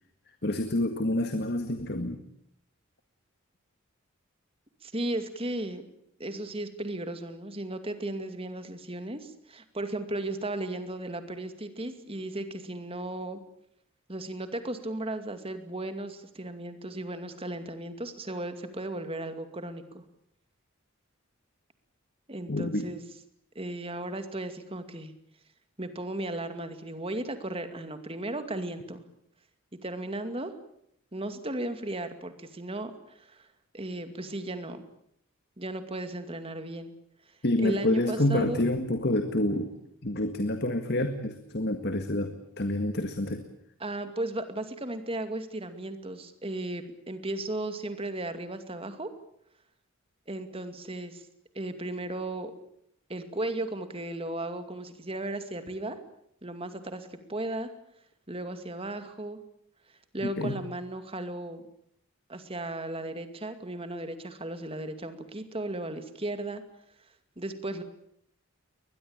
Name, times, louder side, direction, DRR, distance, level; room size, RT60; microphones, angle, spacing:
voice 1, 0.4-2.2 22.5-22.9 37.4-39.7 40.0-43.4 60.2-60.5, left 1 dB, 50° left, 7 dB, 1.8 m, -28 dB
voice 2, 4.8-5.8 6.2-13.4 14.1-20.0 22.3-23.1 23.6-25.1 25.8-29.1 29.8-30.5 31.1-33.5 33.7-34.9 35.6-36.9 37.6-38.6 43.8-49.1 50.3-51.2 51.5-52.5 53.1-56.0 56.4-57.7 58.3-59.4 60.1-61.6 62.3-66.6 67.4-67.8, right 1 dB, 25° right, 9 dB, 2.4 m, -35 dB
22.5 x 21.0 x 8.9 m, 0.73 s
head